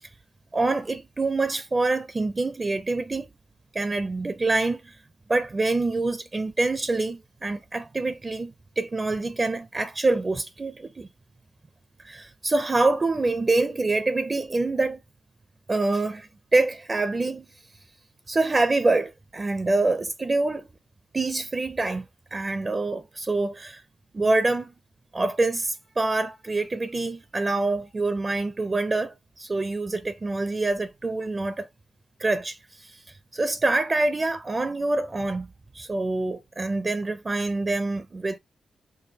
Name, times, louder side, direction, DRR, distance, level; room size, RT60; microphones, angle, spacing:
voice 1, 0.5-3.3 3.7-5.0 5.3-11.1 12.0-15.0 15.7-17.5 18.3-20.7 21.1-22.1 22.3-23.8 24.1-24.7 25.1-31.7 32.2-33.0 33.3-35.5 35.7-38.4, right 2 dB, 30° right, 0.5 m, -26 dB
4.7 x 2.3 x 2.8 m
cardioid pair, 80°, 0 cm